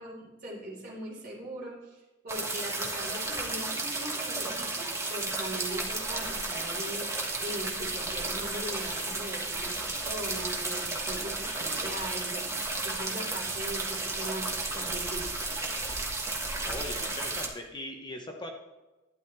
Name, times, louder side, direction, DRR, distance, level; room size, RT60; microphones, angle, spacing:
voice 1, 0.0-15.3, right 1 dB, 45° right, -3 dB, 4.0 m, -40 dB
sound 1, 2.3-17.5, right 2 dB, 15° right, 1.3 m, -33 dB
voice 2, 16.6-18.5, left 1 dB, 20° left, 3 dB, 0.9 m, -40 dB
12.0 x 10.5 x 3.2 m, 1.1 s
head